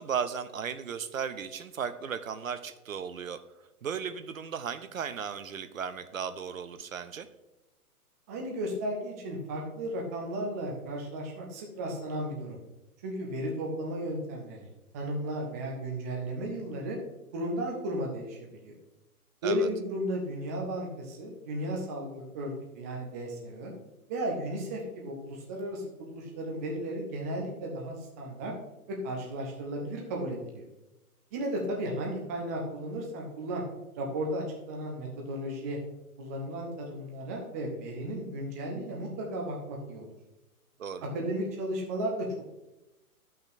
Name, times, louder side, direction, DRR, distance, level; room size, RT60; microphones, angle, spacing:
voice 1, 0.0-3.4 3.8-7.3 19.4-19.7 40.8-41.1, right 7 dB, 60° right, 11 dB, 0.7 m, -35 dB
voice 2, 8.3-12.6 13.0-14.7 14.9-17.0 17.3-18.4 18.6-18.7 19.4-23.7 24.1-28.5 28.9-30.7 31.3-33.6 34.0-35.8 36.2-40.1 41.1-42.4, right 1 dB, 10° right, 0 dB, 0.5 m, -34 dB
13.0 x 5.7 x 2.6 m, 0.96 s
figure-of-eight pair, 115°, 45 cm